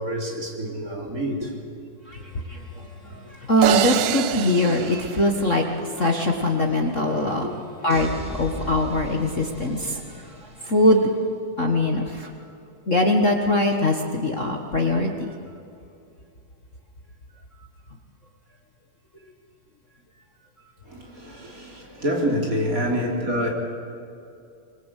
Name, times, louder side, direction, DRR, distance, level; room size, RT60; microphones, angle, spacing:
voice 1, 0.0-1.5 7.4-7.5 20.9-23.5, equal, 25° right, 3.8 m, -27 dB
voice 2, 2.5-7.5 7.8-10.3 10.6-11.1 11.6-12.3 12.9-15.4, left 1 dB, 40° left, 1.1 m, -22 dB
sound 1, 3.6-6.0, right 12 dB, 80° right, 2.4 m, -26 dB
sound 2, 7.9-10.8, left 1 dB, ahead, 2.2 m, -37 dB
25.0 x 22.5 x 8.3 m
omnidirectional pair, 3.8 m